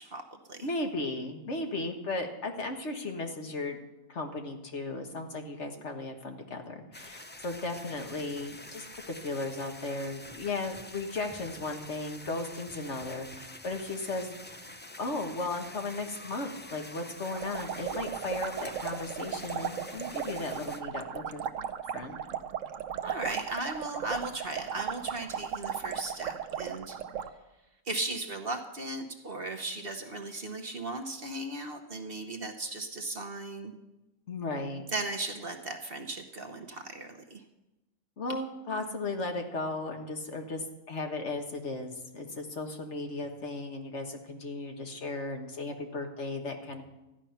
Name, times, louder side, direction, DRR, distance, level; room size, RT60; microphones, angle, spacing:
voice 1, 0.0-0.7 23.0-27.0 27.8-33.7 34.9-37.4, right 2 dB, 45° right, 5 dB, 1.1 m, -37 dB
voice 2, 0.6-3.8 4.1-14.4 15.0-21.5 21.9-22.2 34.3-34.8 38.2-46.8, left 2 dB, 55° left, 4 dB, 1.6 m, -36 dB
sound 1, 6.9-20.8, left 1 dB, 15° left, 0.4 m, -47 dB
sound 2, 17.3-27.3, right 8 dB, 65° right, 1.0 m, -36 dB
13.5 x 10.5 x 5.7 m, 0.98 s
omnidirectional pair, 1.5 m